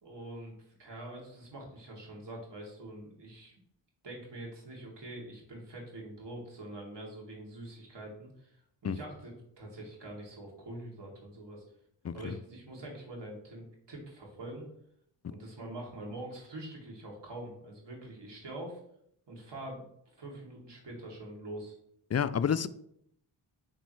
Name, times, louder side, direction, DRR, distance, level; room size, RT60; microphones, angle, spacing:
voice 1, 0.0-3.5 4.0-11.6 12.1-14.6 15.3-18.8 19.3-19.9 20.2-21.7, right 1 dB, 55° right, 2.9 m, -44 dB
voice 2, 12.0-12.4 22.1-22.7, left 7 dB, 35° left, 0.5 m, -29 dB
9.1 x 4.5 x 3.2 m
supercardioid pair, 40°, 49 cm